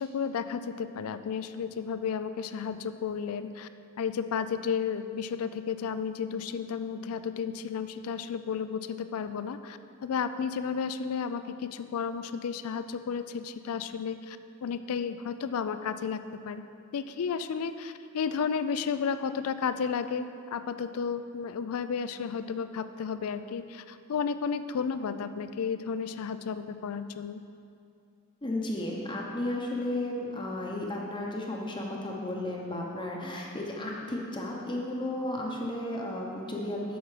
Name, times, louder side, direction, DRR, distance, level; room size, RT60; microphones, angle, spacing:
voice 1, 0.0-3.7 4.0-16.6 16.9-27.4, left 6 dB, 75° left, 11 dB, 0.4 m, -33 dB
voice 2, 28.4-37.0, left 1 dB, 20° left, -1 dB, 0.8 m, -33 dB
7.9 x 6.3 x 4.9 m, 2.5 s
head